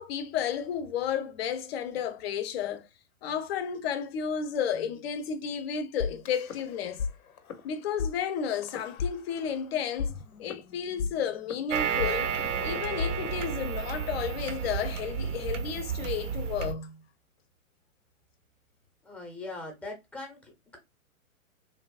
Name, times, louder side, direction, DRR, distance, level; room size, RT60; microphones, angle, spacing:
voice 1, 0.0-2.9 3.2-7.1 7.6-10.1 10.4-12.3 12.6-17.0, left 8 dB, 45° left, 0.5 m, -32 dB
sound 1, 6.0-7.1 7.4-7.6 8.0-8.1 8.6-9.6 10.0-14.0, left 5 dB, 90° left, 0.6 m, -35 dB
sound 2, 11.7-16.7, right 7 dB, 60° right, 0.6 m, -32 dB
voice 2, 19.0-20.8, left 2 dB, 5° left, 0.6 m, -41 dB
3.0 x 2.2 x 2.3 m
hypercardioid pair, 115°, 42 cm